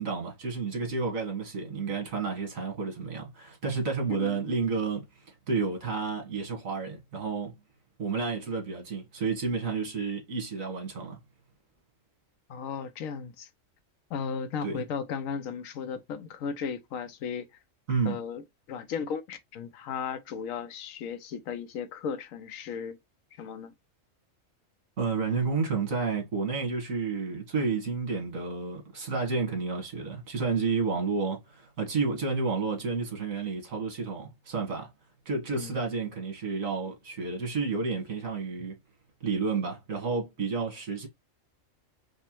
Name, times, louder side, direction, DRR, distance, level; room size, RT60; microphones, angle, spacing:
voice 1, 0.0-7.5 8.0-11.2 14.6-14.8 17.9-18.2 25.0-34.9 35.3-38.8 39.2-41.1, right 4 dB, 90° right, 2.0 m, -31 dB
voice 2, 4.1-4.5 12.5-13.5 14.1-17.5 18.0-23.0 23.4-23.7 35.5-35.8, left 6 dB, 85° left, 1.1 m, -35 dB
5.2 x 2.1 x 3.0 m
omnidirectional pair, 1.4 m